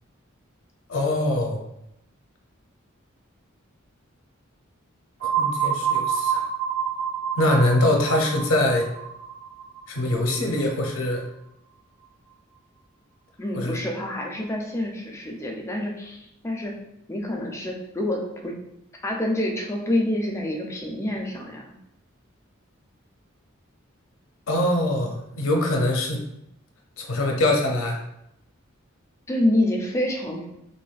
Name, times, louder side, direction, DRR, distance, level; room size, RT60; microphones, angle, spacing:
voice 1, 0.9-1.6 5.2-6.5 7.4-8.9 9.9-11.2 13.5-13.8 24.5-26.2 27.0-28.0, left 1 dB, 70° left, 2 dB, 0.5 m, -23 dB
sound 1, 5.2-10.9, right 8 dB, 70° right, 1.4 m, -28 dB
voice 2, 13.4-16.7 17.1-18.5 19.0-21.7 29.3-30.4, left 1 dB, 15° left, 0 dB, 0.4 m, -27 dB
3.2 x 2.2 x 2.3 m, 0.81 s
head